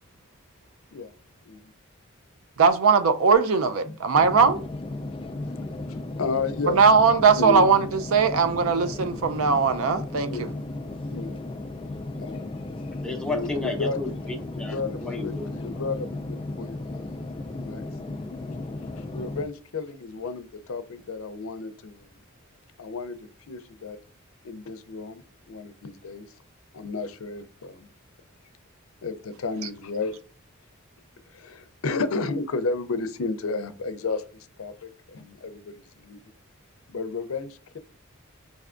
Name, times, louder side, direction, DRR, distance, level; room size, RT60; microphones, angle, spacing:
voice 1, 2.6-4.6 6.7-10.5, right 5 dB, 80° right, 0.5 m, -20 dB
sound 1, 4.1-19.4, left 2 dB, 25° left, 0.3 m, -35 dB
voice 2, 5.9-6.8 7.4-7.7 10.3-10.5 11.1-11.4 12.2-12.5 13.2-14.0 14.7-17.8 19.0-22.1 22.8-23.2 23.5-24.0 24.4-26.2 26.7-27.9 29.0-30.2 31.3-36.2 36.9-37.8, left 3 dB, 80° left, 0.5 m, -32 dB
voice 3, 13.0-15.5, left 2 dB, 5° left, 0.7 m, -32 dB
5.2 x 3.4 x 2.5 m
head